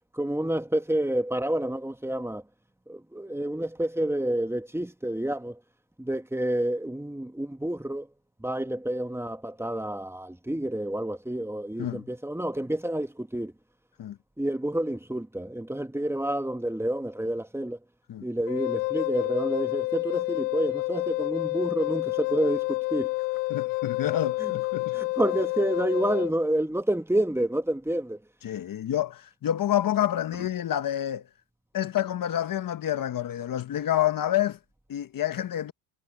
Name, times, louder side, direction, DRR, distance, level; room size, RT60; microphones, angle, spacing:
voice 1, 0.1-2.4 2.9-5.6 6.0-8.1 8.4-13.5 14.4-17.8 18.2-23.1 24.4-24.5 24.9-28.2, right 1 dB, 5° right, 2.0 m, -29 dB
Wind instrument woodwind instrument, 18.5-26.3, left 24 dB, 85° left, 2.4 m, -29 dB
voice 2, 23.5-24.9 28.4-31.2 31.7-34.6 34.9-35.7, left 11 dB, 45° left, 1.5 m, -28 dB
supercardioid pair, 80°, 46 cm